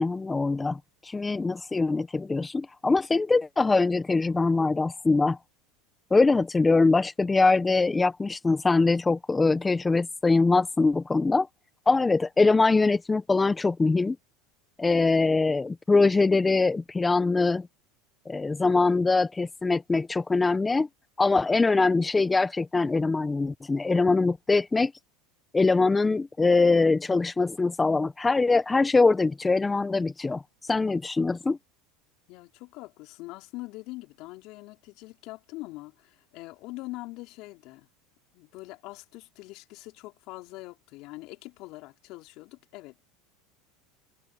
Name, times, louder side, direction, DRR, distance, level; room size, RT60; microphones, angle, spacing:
voice 1, 0.0-5.4 6.1-11.5 11.9-14.2 14.8-17.7 18.3-20.9 21.2-24.9 25.5-31.6, left 3 dB, 15° left, 1.0 m, -23 dB
voice 2, 32.3-37.9 38.3-43.0, left 21 dB, 60° left, 4.6 m, -43 dB
supercardioid pair, 105°, 0 cm